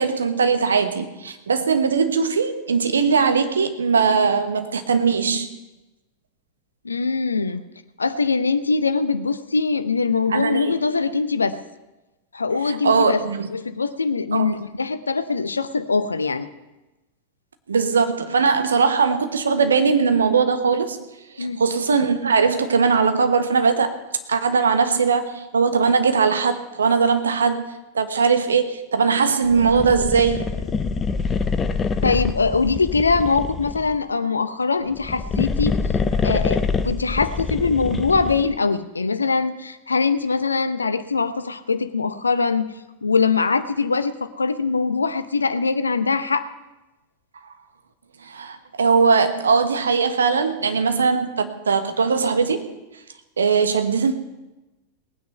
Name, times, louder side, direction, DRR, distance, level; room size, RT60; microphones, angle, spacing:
voice 1, 0.0-5.5 10.3-10.8 12.7-13.5 14.3-14.6 17.7-21.0 21.4-24.0 24.3-30.5 48.2-52.7 53.4-54.1, right 5 dB, 70° right, 8 dB, 1.3 m, -20 dB
voice 2, 6.8-7.6 8.0-11.6 12.3-13.2 13.5-16.5 21.4-21.6 32.0-35.7 36.2-42.7 43.0-46.5, left 4 dB, 75° left, 13 dB, 0.8 m, -22 dB
sound 1, 29.5-34.0 34.9-38.6, left 5 dB, 20° left, 0.9 m, -25 dB
19.5 x 9.4 x 5.6 m, 1.0 s
figure-of-eight pair, 90°, 0 cm